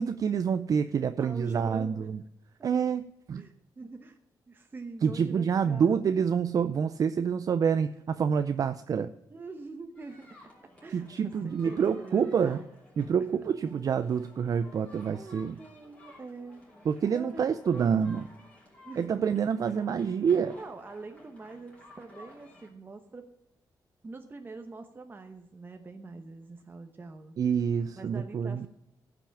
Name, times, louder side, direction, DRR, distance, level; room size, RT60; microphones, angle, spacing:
voice 1, 0.0-2.2 2.6-3.5 5.0-9.1 10.9-12.6 13.0-15.6 16.9-18.2 19.0-20.6 27.4-28.7, right 7 dB, 55° right, 11 dB, 0.5 m, -27 dB
voice 2, 1.2-1.9 3.4-4.2 4.5-6.0 7.9-8.0 9.3-12.7 15.1-16.6 17.1-17.4 17.7-18.1 18.8-19.4 20.6-23.3 24.0-27.4 28.0-28.7, right 3 dB, 30° right, 5 dB, 0.9 m, -45 dB
sound 1, 10.0-22.7, left 2 dB, 15° left, 4.1 m, -55 dB
15.0 x 6.0 x 7.1 m, 0.85 s
cardioid pair, 115°, 7 cm